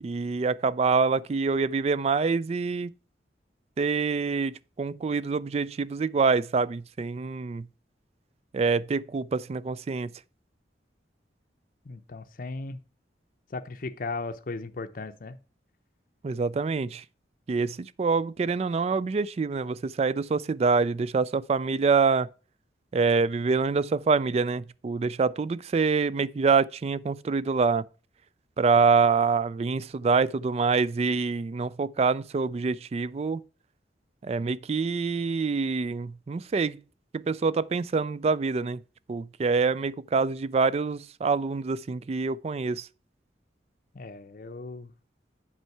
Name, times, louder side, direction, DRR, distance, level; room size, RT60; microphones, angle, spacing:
voice 1, 0.0-2.9 3.8-7.7 8.5-10.1 16.2-17.0 17.5-22.3 22.9-27.8 28.6-33.4 34.2-36.8 37.1-38.8 39.1-42.9, right 4 dB, 35° right, 0.3 m, -26 dB
voice 2, 11.9-12.8 13.5-15.4 43.9-44.9, left 3 dB, 50° left, 0.6 m, -36 dB
8.2 x 5.5 x 4.5 m
head